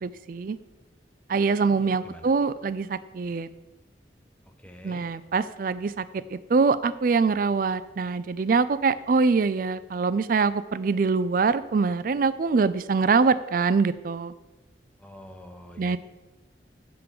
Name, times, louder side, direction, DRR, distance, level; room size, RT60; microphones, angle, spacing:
voice 1, 0.0-0.6 1.3-3.5 4.8-14.3 15.8-16.0, right 4 dB, 50° right, 15 dB, 0.4 m, -24 dB
voice 2, 1.5-2.3 4.6-5.0 15.0-16.0, left 1 dB, 5° left, 5 dB, 0.7 m, -46 dB
10.5 x 3.8 x 6.7 m, 1.1 s
head